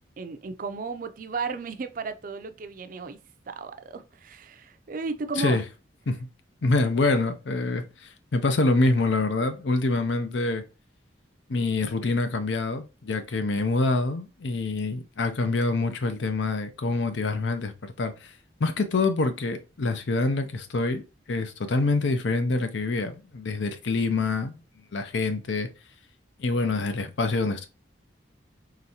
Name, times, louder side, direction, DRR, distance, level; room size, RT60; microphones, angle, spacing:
voice 1, 0.2-3.2 3.5-5.6, right 4 dB, 45° right, 0.4 m, -34 dB
voice 2, 6.6-10.6 11.5-18.3 18.6-24.6 24.9-25.7 26.4-27.7, left 3 dB, 75° left, 0.6 m, -26 dB
3.9 x 3.1 x 2.8 m
head